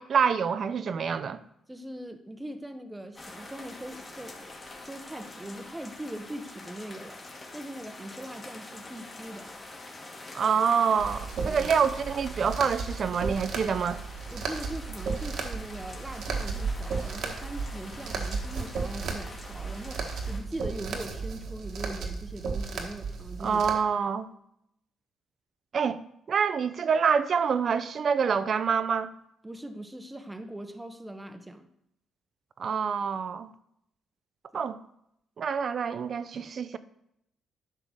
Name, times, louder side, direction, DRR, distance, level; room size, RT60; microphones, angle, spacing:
voice 1, 0.0-1.4 10.3-14.0 23.4-24.3 25.7-26.0 26.3-29.1 32.6-33.5 34.5-34.8 35.4-36.8, right 6 dB, 50° right, 0.6 m, -26 dB
voice 2, 1.7-4.6 4.9-7.2 7.5-9.6 11.4-11.7 14.3-23.6 29.4-31.7 34.5-34.7, right 1 dB, 10° right, 0.9 m, -41 dB
sound 1, 3.2-20.4, left 2 dB, 30° left, 2.0 m, -45 dB
sound 2, 11.0-23.7, right 5 dB, 70° right, 1.4 m, -34 dB
10.5 x 3.8 x 6.4 m
cardioid pair, 90°, 0 cm